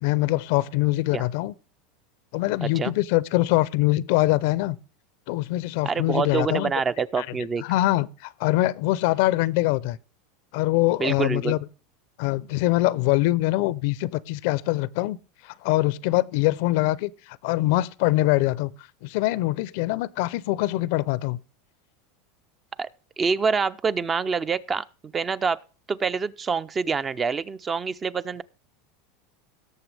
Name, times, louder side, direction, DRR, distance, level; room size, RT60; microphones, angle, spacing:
voice 1, 0.0-1.5 2.3-4.8 5.3-6.7 7.2-7.3 7.6-10.0 10.5-11.6 12.2-15.2 15.4-18.7 19.0-21.4, left 17 dB, 65° left, 0.5 m, -23 dB
voice 2, 2.6-2.9 5.9-7.6 11.0-11.6 22.8-22.9 23.2-24.8 25.1-25.6 25.9-28.4, right 5 dB, 25° right, 0.5 m, -26 dB
17.5 x 7.0 x 3.3 m
supercardioid pair, 120°, 0 cm